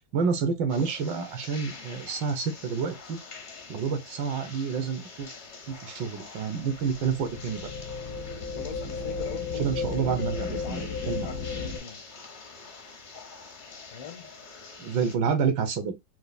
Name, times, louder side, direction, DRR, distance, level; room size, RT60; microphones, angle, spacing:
voice 1, 0.1-3.2 3.7-5.3 5.7-7.7 9.6-11.3 14.8-15.9, right 6 dB, 75° right, 1.5 m, -29 dB
sound 1, 0.7-15.2, left 4 dB, 50° left, 0.5 m, -46 dB
sound 2, 6.6-11.8, left 5 dB, 70° left, 0.9 m, -34 dB
voice 2, 8.6-12.0 13.9-14.4, left 7 dB, 85° left, 1.6 m, -41 dB
4.4 x 2.4 x 2.5 m
omnidirectional pair, 2.0 m